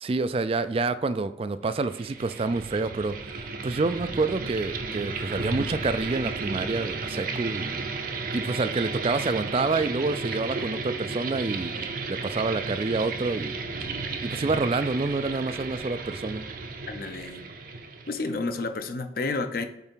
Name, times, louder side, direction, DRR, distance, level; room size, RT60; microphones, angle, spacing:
voice 1, 0.0-7.8 8.3-13.5 14.2-16.4, right 3 dB, 30° right, 12 dB, 0.3 m, -28 dB
sound 1, 1.7-18.4, right 3 dB, 50° right, 0.7 m, -34 dB
voice 2, 16.9-17.5 18.1-19.6, left 3 dB, 50° left, 8 dB, 0.7 m, -30 dB
5.5 x 4.8 x 4.6 m, 0.87 s
head